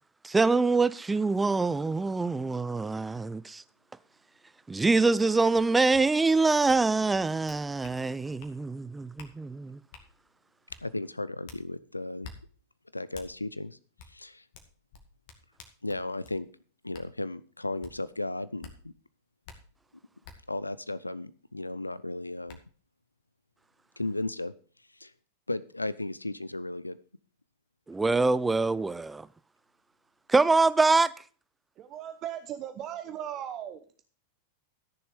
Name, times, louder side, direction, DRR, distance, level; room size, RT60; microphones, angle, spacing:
voice 1, 0.2-3.6 4.7-9.8 27.9-29.3 30.3-31.1, right 3 dB, 10° right, 0.5 m, -25 dB
sound 1, 5.5-5.6 5.9-6.0 6.7-6.8 7.1-8.0 8.4-8.5 9.2-9.3 9.9-10.1 10.7-10.8 11.5-11.6 12.2-12.4 13.1-13.3 14.0-14.1 14.5-16.4 16.9-17.1 17.8-17.9 18.6-18.7 19.4-19.6 20.2-20.4 21.9-22.0 22.5-22.6, left 5 dB, 45° left, 2.1 m, -48 dB
voice 2, 10.8-12.3 12.9-13.8 14.1-14.4 15.8-16.5 16.8-18.7 20.5-22.6 24.0-24.5 25.0-25.1 25.5-27.0, left 2 dB, 85° left, 0.5 m, -35 dB
voice 3, 31.8-33.8, right 10 dB, 35° right, 0.9 m, -37 dB
13.5 x 6.9 x 5.0 m
figure-of-eight pair, 90°, 0 cm